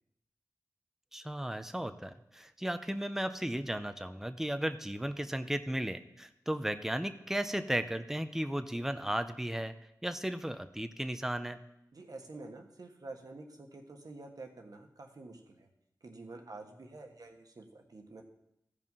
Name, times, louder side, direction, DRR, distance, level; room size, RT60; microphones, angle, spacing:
voice 1, 1.1-9.7 10.0-11.6, right 1 dB, 5° right, 10 dB, 0.7 m, -35 dB
voice 2, 11.9-15.7 16.0-18.2, right 2 dB, 65° right, 3 dB, 1.4 m, -48 dB
15.0 x 5.2 x 5.5 m, 0.81 s
cardioid pair, 50°, 7 cm